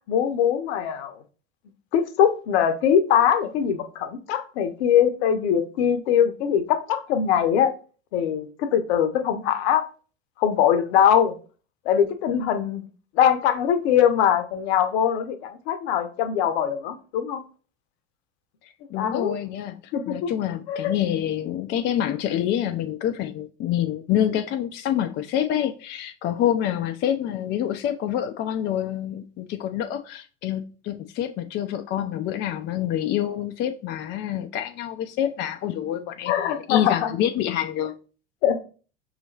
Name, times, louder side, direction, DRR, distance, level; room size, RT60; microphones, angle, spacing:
voice 1, 0.1-1.1 1.9-7.7 8.1-9.8 10.4-11.3 11.9-12.8 13.1-17.4 18.9-19.3 19.9-20.3 20.7-20.9 36.3-37.1 38.4-38.6, left 9 dB, 60° left, 0.7 m, -22 dB
voice 2, 18.9-19.8 20.1-36.3 36.7-37.9, left 10 dB, 30° left, 0.4 m, -27 dB
5.5 x 2.9 x 2.7 m
hypercardioid pair, 75°, 35 cm